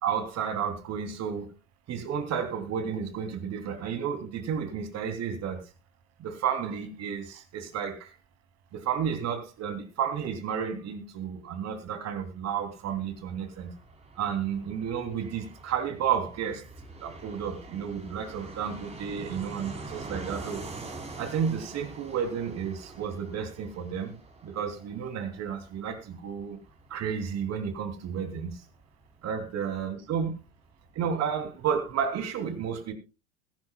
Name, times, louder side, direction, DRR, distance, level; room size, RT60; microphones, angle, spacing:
voice 1, 0.0-1.5 1.9-5.6 6.2-8.1 8.7-13.7 14.2-16.7 17.0-20.6 21.2-24.2 24.4-26.6 26.9-28.6 29.2-30.3 30.9-32.9, right 7 dB, 40° right, 8 dB, 3.1 m, -32 dB
Fixed-wing aircraft airplane, 12.5-30.9 31.1-31.2 31.4-32.1, right 2 dB, 15° right, 3.9 m, -45 dB
21.5 x 11.0 x 2.3 m, 0.28 s
hypercardioid pair, 85°, 40 cm